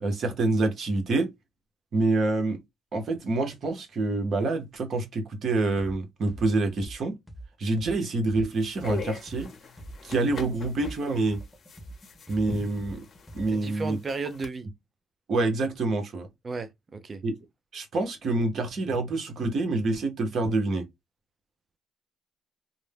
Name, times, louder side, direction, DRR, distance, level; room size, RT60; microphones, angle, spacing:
voice 1, 0.0-1.3 1.9-2.6 2.9-7.1 7.6-9.5 10.0-11.4 12.3-13.0 13.3-14.0 15.3-16.3 17.2-17.3 17.7-20.9, right 2 dB, 55° right, 1.0 m, -27 dB
sound 1, 5.8-6.0 6.3-10.0 10.3-13.7, right 1 dB, 10° left, 0.6 m, -44 dB
sound 2, 8.5-14.5, left 5 dB, 50° left, 0.8 m, -42 dB
voice 2, 13.5-14.7 16.4-17.2, right 3 dB, 35° right, 0.5 m, -34 dB
2.5 x 2.2 x 3.2 m
cardioid pair, 90°, 0 cm